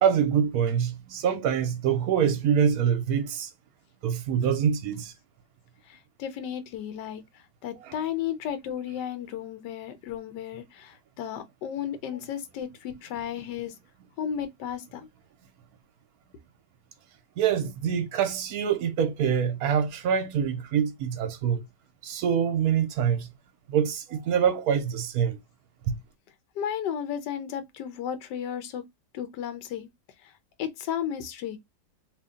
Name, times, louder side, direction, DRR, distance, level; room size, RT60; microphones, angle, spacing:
voice 1, 0.0-3.5 4.0-5.1 7.8-8.0 17.4-21.6 22.0-23.3 23.7-25.4 25.9-26.0, right 8 dB, 70° right, 1.0 m, -25 dB
voice 2, 5.9-7.2 7.6-13.7 14.2-15.1 26.6-28.8 29.1-29.9 30.6-31.6, left 9 dB, 85° left, 1.3 m, -34 dB
2.8 x 2.7 x 3.5 m
omnidirectional pair, 1.8 m